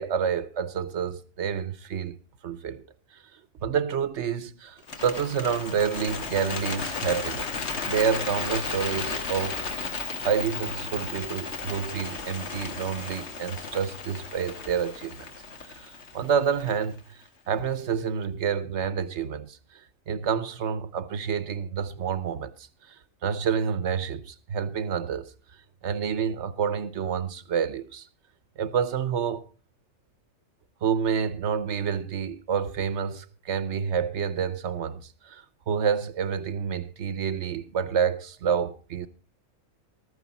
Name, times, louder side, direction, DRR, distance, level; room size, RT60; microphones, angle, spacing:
voice 1, 0.0-2.2 2.4-2.8 3.1-7.6 7.9-9.6 9.9-15.3 15.7-17.2 17.5-25.3 25.8-28.1 28.6-29.5 30.8-39.1, right 7 dB, 65° right, 1.1 m, -29 dB
Bird, 4.8-17.0, left 4 dB, 60° left, 1.7 m, -34 dB
14.5 x 13.0 x 4.1 m
omnidirectional pair, 1.3 m